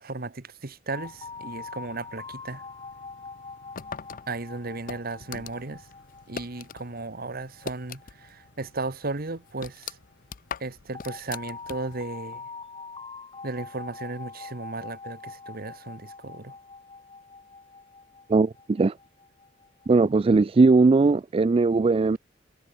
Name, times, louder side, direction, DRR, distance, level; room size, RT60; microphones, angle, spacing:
voice 1, 0.0-2.6 4.3-5.8 6.3-10.0 10.6-12.4 13.4-16.6, right 3 dB, 55° right, 1.4 m, -35 dB
sound 1, 0.9-9.7 10.9-20.1, left 4 dB, 30° left, 4.2 m, -44 dB
sound 2, 1.0-11.9, left 1 dB, 65° left, 5.4 m, -59 dB
sound 3, 3.8-6.9 7.2-8.4 8.7-8.8 9.2-12.1, left 6 dB, 45° left, 0.5 m, -40 dB
voice 2, 18.3-18.9 19.9-22.2, right 3 dB, 30° right, 0.3 m, -19 dB
head